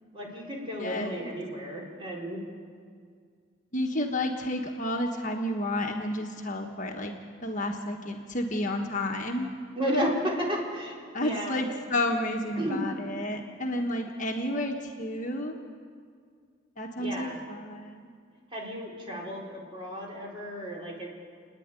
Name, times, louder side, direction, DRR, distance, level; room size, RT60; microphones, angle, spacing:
voice 1, 0.1-2.4 9.7-11.6 12.6-12.9 17.0-17.4 18.5-21.1, equal, 25° right, -2 dB, 4.3 m, -33 dB
voice 2, 0.8-1.3 3.7-7.1 7.4-9.5 11.1-15.6 16.8-18.1, left 1 dB, 40° left, 2 dB, 1.4 m, -31 dB
29.0 x 10.0 x 9.6 m, 2.1 s
head